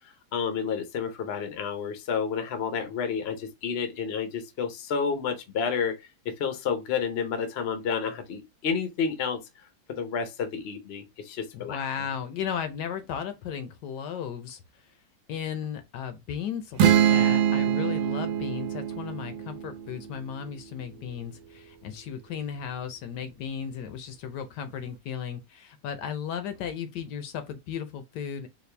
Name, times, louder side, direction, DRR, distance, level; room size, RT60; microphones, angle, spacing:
voice 1, 0.3-5.9 6.4-9.4 10.0-11.8, left 6 dB, 55° left, 0.7 m, -30 dB
voice 2, 11.5-14.9 15.3-28.5, left 8 dB, 70° left, 1.2 m, -35 dB
sound 1, 16.8-20.5, right 9 dB, 90° right, 1.4 m, -24 dB
4.2 x 2.4 x 3.2 m
omnidirectional pair, 2.0 m